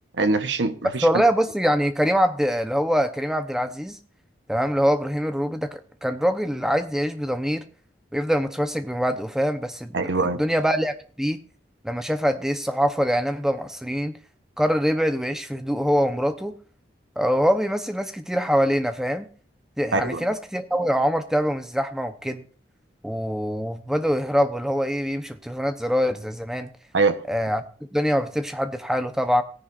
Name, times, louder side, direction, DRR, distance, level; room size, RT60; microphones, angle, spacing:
voice 1, 0.1-1.1 9.9-10.4 19.9-20.3 26.9-27.2, right 3 dB, 80° right, 1.1 m, -23 dB
voice 2, 1.0-4.0 4.5-7.6 8.1-11.4 11.8-14.1 14.6-16.5 17.2-19.3 19.8-22.4 23.0-26.7 27.3-27.6 27.9-29.4, equal, 5° right, 0.8 m, -24 dB
18.0 x 10.0 x 2.6 m
head